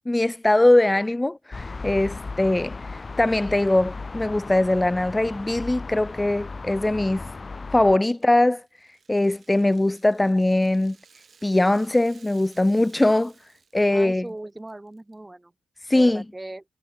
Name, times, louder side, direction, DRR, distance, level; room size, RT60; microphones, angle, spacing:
voice 1, 0.1-7.3 7.7-8.6 9.1-11.0 11.4-13.3 13.7-14.2 15.8-16.2, left 1 dB, 10° left, 0.5 m, -21 dB
sound 1, 1.5-8.0, left 3 dB, 25° left, 1.5 m, -36 dB
Rattle (instrument), 8.1-13.9 14.1-14.3 14.7-15.1, right 5 dB, 40° right, 7.9 m, -56 dB
voice 2, 13.9-15.5 15.9-16.6, right 2 dB, 10° right, 4.8 m, -38 dB
cardioid pair, 90°, 0 cm